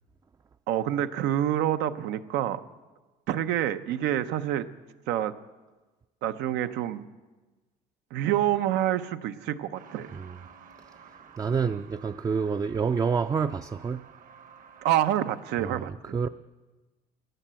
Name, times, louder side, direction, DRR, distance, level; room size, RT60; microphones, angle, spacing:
voice 1, 0.7-2.6 3.3-4.7 5.1-5.3 6.2-7.1 8.1-10.1 14.8-16.1, right 12 dB, 90° right, 0.7 m, -27 dB
Truck, 9.7-15.5, right 7 dB, 55° right, 1.1 m, -52 dB
voice 2, 11.4-14.1 15.6-16.3, right 6 dB, 20° right, 0.4 m, -28 dB
14.5 x 10.0 x 7.5 m
cardioid pair, 110°, 17 cm